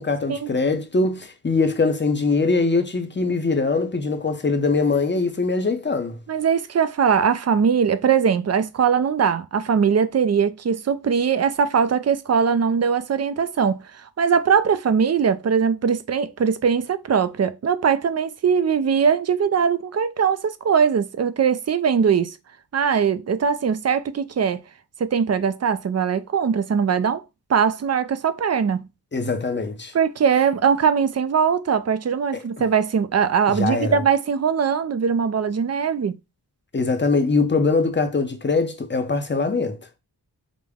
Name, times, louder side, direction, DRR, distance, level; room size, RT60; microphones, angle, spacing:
voice 1, 0.0-6.2 29.1-29.9 32.3-32.4 33.6-34.0 36.7-39.8, left 3 dB, 25° left, 0.7 m, -22 dB
voice 2, 6.3-22.4 22.7-24.6 25.0-27.2 27.5-28.8 29.9-36.2, right 6 dB, 40° right, 0.4 m, -21 dB
5.1 x 2.1 x 3.5 m
wide cardioid pair, 105°, 41 cm